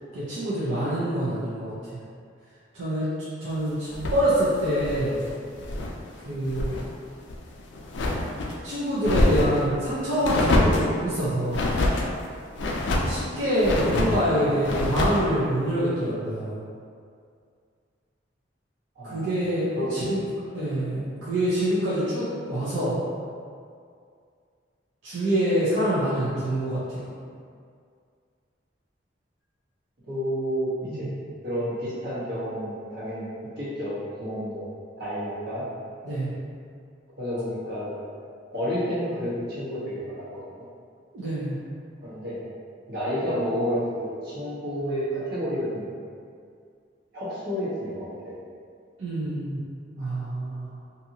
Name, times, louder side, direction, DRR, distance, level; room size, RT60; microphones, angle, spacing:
voice 1, 0.1-2.0 2.7-3.1 3.4-5.2 6.2-6.8 8.6-11.7 12.9-16.6 19.0-20.2 20.5-23.0 25.0-27.1 30.8-31.2 36.0-36.3 41.1-41.6 49.0-49.6 50.0-50.8, right 1 dB, 80° right, -11 dB, 0.6 m, -26 dB
sound 1, 3.9-6.0 6.3-6.9 7.2-8.5 9.0-9.7 10.2-10.9 11.5-12.1 12.6-13.2 13.6-14.2 14.6-15.3, left 1 dB, 70° left, 0.4 m, -25 dB
voice 2, 14.2-15.0 19.0-19.3 19.7-20.1 21.2-21.3 30.1-31.2 31.4-34.7 35.0-35.7 37.2-37.9 38.5-40.2 42.0-42.4 42.9-45.9 47.1-48.3, equal, 60° right, -10 dB, 1.0 m, -30 dB
2.7 x 2.5 x 2.7 m, 2.3 s
head